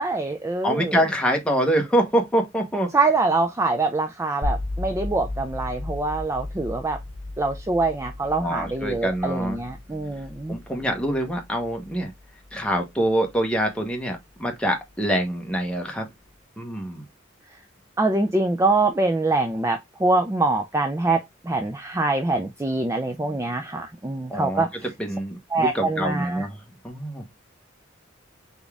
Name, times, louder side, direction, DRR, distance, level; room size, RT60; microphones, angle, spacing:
voice 1, 0.0-1.0 2.9-7.0 7.4-10.6 18.0-24.9 25.5-26.5, right 2 dB, 15° right, 0.3 m, -24 dB
voice 2, 0.6-3.0 8.4-9.6 10.5-12.1 12.5-16.1 16.6-17.0 24.3-24.7 25.0-26.6 26.8-27.2, right 1 dB, 5° left, 1.0 m, -25 dB
sound 1, 4.4-14.4, left 2 dB, 30° left, 1.3 m, -35 dB
4.0 x 3.5 x 3.4 m
head